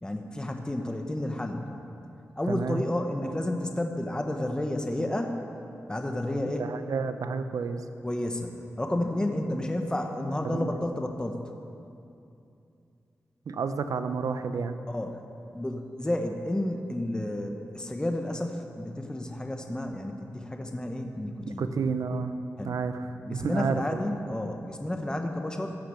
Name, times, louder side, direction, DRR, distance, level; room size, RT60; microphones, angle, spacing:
voice 1, 0.0-1.7 2.4-5.4 5.9-6.7 8.0-11.4 14.9-15.2 15.5-21.7 22.6-22.8 23.2-25.8, left 1 dB, 15° left, 4 dB, 1.0 m, -31 dB
voice 2, 2.5-2.8 6.6-7.8 10.4-10.7 13.5-14.8 21.6-22.3 22.6-24.0, right 5 dB, 85° right, 9 dB, 0.7 m, -30 dB
14.5 x 6.7 x 8.3 m, 2.7 s
wide cardioid pair, 90°, 6 cm